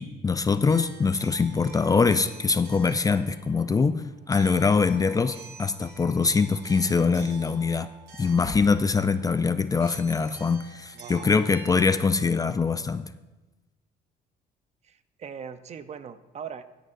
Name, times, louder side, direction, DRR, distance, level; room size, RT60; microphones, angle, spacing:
voice 1, 0.0-7.9 8.2-13.0, left 4 dB, 20° left, 11 dB, 0.4 m, -23 dB
sound 1, 0.7-12.0, right 5 dB, 75° right, 2.9 m, -49 dB
voice 2, 10.9-11.4 14.8-16.6, right 7 dB, 40° right, 11 dB, 0.7 m, -40 dB
16.5 x 9.9 x 2.6 m, 1.1 s
cardioid pair, 110°, 17 cm